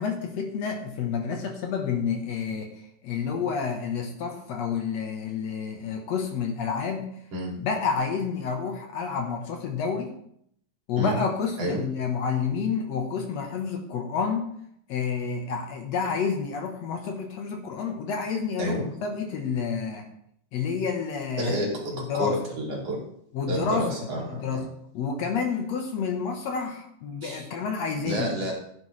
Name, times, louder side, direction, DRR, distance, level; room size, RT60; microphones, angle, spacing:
voice 1, 0.0-7.1 7.6-10.1 10.9-14.5 14.9-20.1 20.5-22.4 23.3-24.0 24.3-24.7 24.9-28.3, left 6 dB, 65° left, 3 dB, 2.3 m, -29 dB
voice 2, 21.4-23.0 23.5-24.6 27.2-27.4 28.0-28.5, equal, 50° right, -1 dB, 3.8 m, -29 dB
16.0 x 9.9 x 3.3 m, 0.70 s
omnidirectional pair, 3.6 m